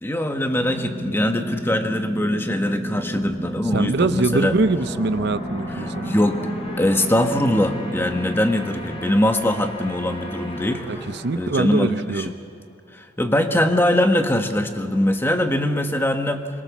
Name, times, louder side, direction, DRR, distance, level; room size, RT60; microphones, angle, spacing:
voice 1, 0.0-4.5 5.7-6.4 6.8-11.1 11.3-12.3 12.9-16.5, left 1 dB, 10° left, 5 dB, 1.4 m, -22 dB
sound 1, 0.6-8.5, equal, 90° left, 2.6 m, -32 dB
sound 2, 3.5-12.6, left 1 dB, 30° left, 4.3 m, -38 dB
voice 2, 3.7-6.2 10.9-12.3, right 3 dB, 60° right, 12 dB, 0.6 m, -23 dB
25.5 x 22.0 x 7.2 m, 2.3 s
head